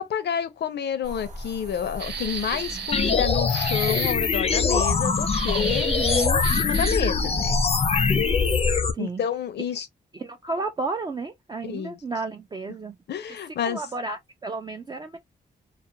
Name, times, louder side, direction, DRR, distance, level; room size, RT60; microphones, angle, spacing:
voice 1, 0.0-5.9 6.6-7.6 9.0-9.9 11.6-12.0 13.1-13.8, left 8 dB, 85° left, 0.6 m, -29 dB
sound 1, 1.0-8.8, left 1 dB, 45° right, 0.7 m, -34 dB
sound 2, 2.0-3.2 3.5-4.2 5.3-7.1, right 6 dB, 90° right, 0.6 m, -33 dB
voice 2, 2.5-2.9 5.8-6.4 8.9-9.2 10.1-13.0 13.7-15.2, right 3 dB, 25° right, 0.3 m, -32 dB
sound 3, 2.9-8.9, left 5 dB, 35° left, 0.4 m, -23 dB
2.4 x 2.1 x 2.7 m
wide cardioid pair, 120°, 17 cm